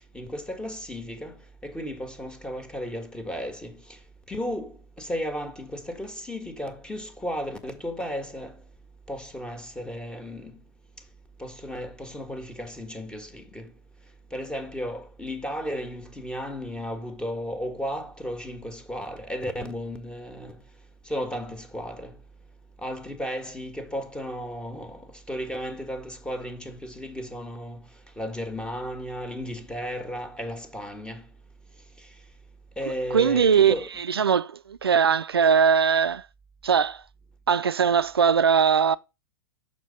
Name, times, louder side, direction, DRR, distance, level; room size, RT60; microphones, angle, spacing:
voice 1, 0.1-1.3 1.6-3.8 4.3-8.5 9.1-10.5 11.4-13.7 14.3-20.6 21.1-22.1 22.8-25.0 25.3-27.8 28.2-31.2 32.8-33.9, equal, 5° left, 1.6 m, -34 dB
voice 2, 33.1-36.2 36.6-37.0 37.5-39.0, right 7 dB, 90° right, 0.4 m, -21 dB
6.8 x 4.4 x 5.1 m
hypercardioid pair, 105°, 12 cm